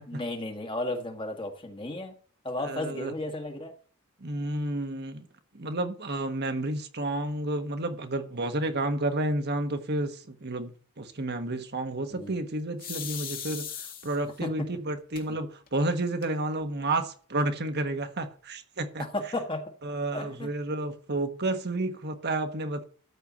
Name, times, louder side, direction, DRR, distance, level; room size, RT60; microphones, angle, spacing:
voice 1, 0.1-2.1 2.4-3.7 12.1-12.3 14.4-14.7 19.0-19.6 20.1-20.5, left 1 dB, 25° left, 1.8 m, -34 dB
voice 2, 2.6-3.1 4.2-5.3 5.5-10.7 11.0-19.0 19.8-22.8, right 2 dB, 50° right, 1.4 m, -31 dB
sound 1, 12.8-14.4 15.2-15.3 15.7-15.8 16.0-16.6, left 8 dB, 40° left, 2.0 m, -38 dB
13.5 x 4.6 x 7.4 m
head